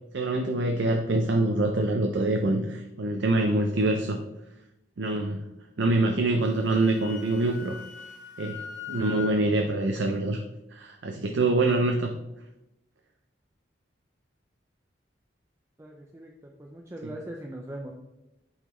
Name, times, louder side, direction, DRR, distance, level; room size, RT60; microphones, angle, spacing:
voice 1, 0.1-4.2 5.0-5.4 5.8-7.8 8.4-10.4 10.7-12.2 17.0-17.1, right 2 dB, 70° right, 3 dB, 0.5 m, -25 dB
Wind instrument woodwind instrument, 6.4-9.4, left 6 dB, 65° left, 1.5 m, -41 dB
voice 2, 15.8-17.9, right 1 dB, 15° right, 0 dB, 0.4 m, -40 dB
8.9 x 4.0 x 3.0 m, 0.92 s
head